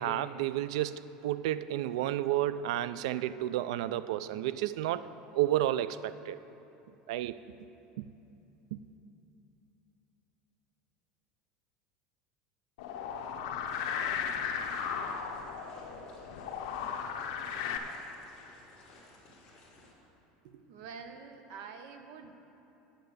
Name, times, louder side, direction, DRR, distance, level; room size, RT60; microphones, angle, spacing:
voice 1, 0.0-6.4 7.1-7.4 8.0-8.1 8.7-8.8, right 13 dB, 90° right, 15 dB, 0.3 m, -31 dB
sound 1, 12.8-17.8, left 7 dB, 70° left, 0.8 m, -36 dB
sound 2, 14.2-19.9, left 2 dB, 25° left, 1.9 m, -57 dB
voice 2, 20.4-22.4, right 5 dB, 55° right, 7 dB, 0.8 m, -47 dB
8.9 x 6.4 x 8.0 m, 2.9 s
cardioid pair, 175°, 3 cm